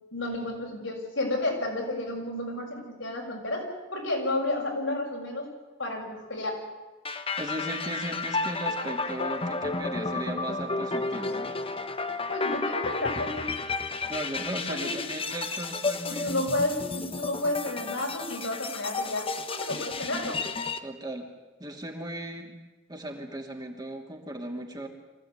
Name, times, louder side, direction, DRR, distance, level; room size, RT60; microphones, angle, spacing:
voice 1, 0.1-5.5 5.8-6.6 12.3-13.5 14.7-14.9 16.1-20.4, left 2 dB, 75° left, 0 dB, 6.6 m, -31 dB
sound 1, 7.0-20.8, left 3 dB, 30° left, 1.2 m, -32 dB
voice 2, 7.4-11.6 14.1-16.5 20.8-21.3 21.6-22.5 22.9-24.9, right 1 dB, 20° right, 1 dB, 2.9 m, -37 dB
25.0 x 16.0 x 9.7 m, 1.2 s
head